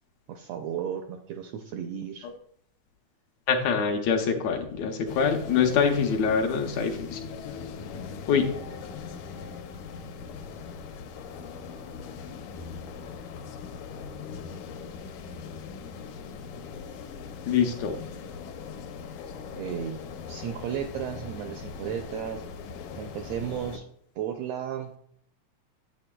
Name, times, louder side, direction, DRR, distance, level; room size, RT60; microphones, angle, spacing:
voice 1, 0.3-2.3 19.6-20.0 20.3-22.4 23.0-23.8 24.2-24.9, right 9 dB, 85° right, 4 dB, 1.5 m, -34 dB
voice 2, 3.5-7.2 8.3-8.5 17.5-18.0, left 6 dB, 75° left, 3 dB, 1.8 m, -24 dB
sound 1, 5.0-23.8, left 5 dB, 90° left, 2.2 m, -40 dB
8.4 x 8.1 x 2.2 m, 0.66 s
omnidirectional pair, 3.4 m